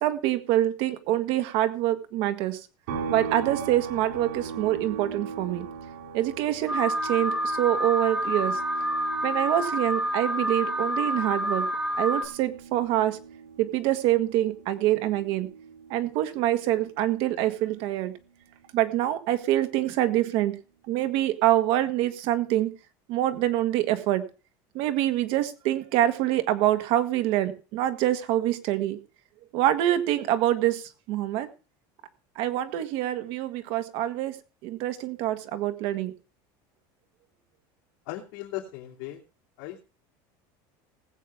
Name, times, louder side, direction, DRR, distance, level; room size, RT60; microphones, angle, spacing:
voice 1, 0.0-2.6 3.1-5.7 6.1-8.6 9.2-11.7 12.0-13.2 13.6-15.5 15.9-18.2 18.7-20.6 20.9-22.7 23.1-24.3 24.7-29.0 29.5-31.5 32.3-34.4 34.6-36.1, right 13 dB, 50° right, 9 dB, 1.5 m, -25 dB
sound 1, 2.9-16.4 16.8-19.0, right 5 dB, 90° right, 5.9 m, -40 dB
Alarm, 6.7-12.3, equal, 5° right, 3.3 m, -28 dB
voice 2, 38.1-39.2 39.6-39.8, left 14 dB, 70° left, -3 dB, 2.9 m, -37 dB
19.5 x 8.5 x 3.5 m, 0.34 s
cardioid pair, 170°, 11 cm